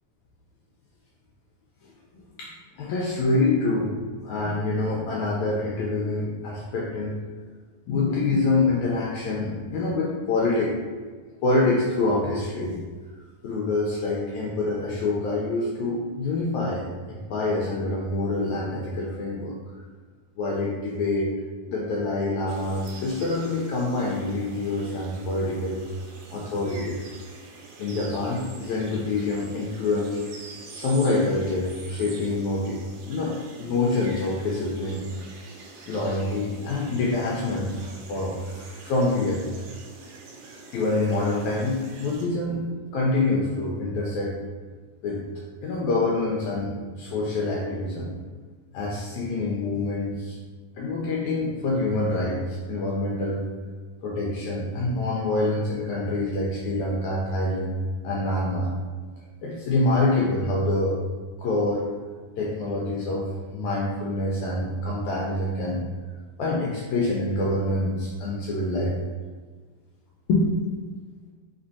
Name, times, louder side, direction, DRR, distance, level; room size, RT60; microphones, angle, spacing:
voice 1, 1.8-2.5 2.8-3.9 4.2-7.2 7.9-10.8 11.4-12.8 13.4-19.6 20.4-21.3 21.7-25.8 26.3-27.0 27.8-30.2 30.7-32.8 33.1-35.0 35.9-39.4 40.7-42.6 42.9-44.3 45.0-45.2 45.6-48.1 48.7-50.4 50.8-53.4 54.0-57.8 58.0-58.7 59.4-61.0 61.4-61.8 62.4-65.8 66.4-69.0 70.3-70.7, left 2 dB, 80° left, -3 dB, 1.7 m, -26 dB
sound 1, 22.5-42.3, right 3 dB, 85° right, 1.5 m, -45 dB
4.4 x 4.2 x 2.6 m, 1.5 s
omnidirectional pair, 3.7 m